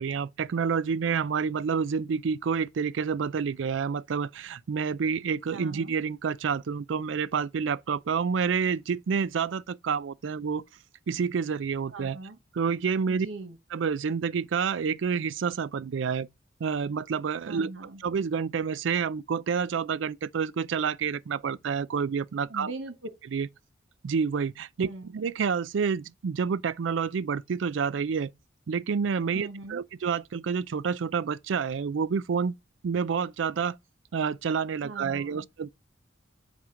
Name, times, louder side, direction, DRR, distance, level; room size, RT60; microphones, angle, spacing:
voice 1, 0.0-10.6 11.1-12.2 12.5-13.3 13.7-16.3 16.6-17.7 18.0-22.7 23.3-23.5 24.0-28.3 28.7-32.5 32.8-33.8 34.1-35.7, right 6 dB, 70° right, 0.4 m, -28 dB
voice 2, 5.5-6.0 11.9-12.4 13.1-13.6 17.4-18.0 22.4-23.1 24.8-25.1 29.3-29.8 34.8-35.5, right 2 dB, 90° right, 1.0 m, -40 dB
7.3 x 5.0 x 3.7 m
head